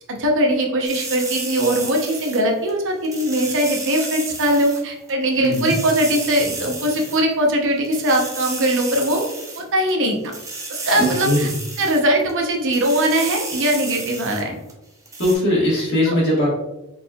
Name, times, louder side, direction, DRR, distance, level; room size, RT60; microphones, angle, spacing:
voice 1, 0.1-9.2 9.6-10.2 10.7-11.5 11.8-14.6 16.1-16.2, right 1 dB, 60° right, 2 dB, 0.8 m, -20 dB
sound 1, 0.8-2.7 3.0-4.8 5.1-5.2 5.4-7.2 7.5-7.6 7.8-9.9 10.2-12.0 12.3-12.4 12.7-14.4 14.7-14.8 15.1-15.4, right 3 dB, 15° right, 0.6 m, -32 dB
voice 2, 5.4-5.8 11.0-11.5 15.2-16.5, left 1 dB, 50° left, -6 dB, 1.4 m, -20 dB
4.1 x 3.6 x 2.3 m, 0.95 s
head